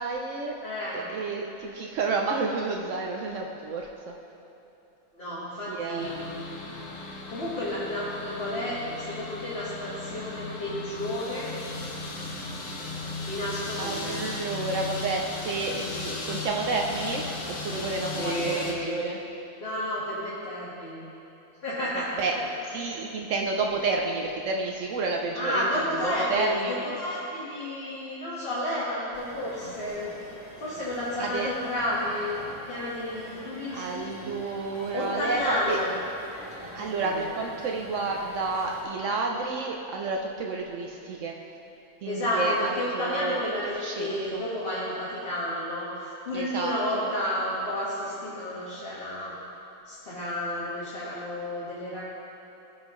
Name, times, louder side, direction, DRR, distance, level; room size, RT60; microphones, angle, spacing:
voice 1, 0.0-0.6 0.9-4.1 5.7-6.9 13.8-19.2 22.2-22.3 22.6-26.9 31.2-31.5 32.4-32.5 33.7-35.8 36.7-41.4 42.0-44.4 46.3-47.1, right 3 dB, 65° right, 1 dB, 0.9 m, -30 dB
voice 2, 0.6-1.1 5.1-6.1 7.3-11.5 13.3-14.2 18.1-18.9 19.6-21.1 21.6-22.4 25.3-30.1 30.6-32.3 32.6-34.1 34.9-35.9 36.6-37.2 42.0-49.3 49.8-52.0, left 1 dB, 45° left, -10 dB, 1.7 m, -31 dB
sound 1, 6.0-18.7, left 2 dB, 70° left, 1.3 m, -36 dB
sound 2, 29.1-38.8, equal, 5° right, 1.8 m, -45 dB
15.5 x 5.6 x 3.1 m, 2.9 s
omnidirectional pair, 1.5 m